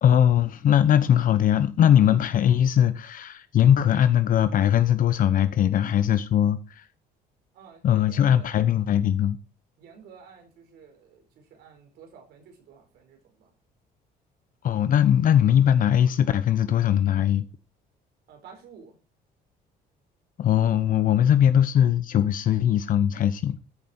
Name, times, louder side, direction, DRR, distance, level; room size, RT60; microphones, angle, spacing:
voice 1, 0.0-6.8 7.8-9.4 14.6-17.4 20.4-23.6, left 10 dB, 55° left, 0.9 m, -20 dB
voice 2, 7.5-8.5 9.8-13.5 18.3-19.0, right 6 dB, 75° right, 4.7 m, -51 dB
14.0 x 6.8 x 4.4 m
cardioid pair, 110°, 17 cm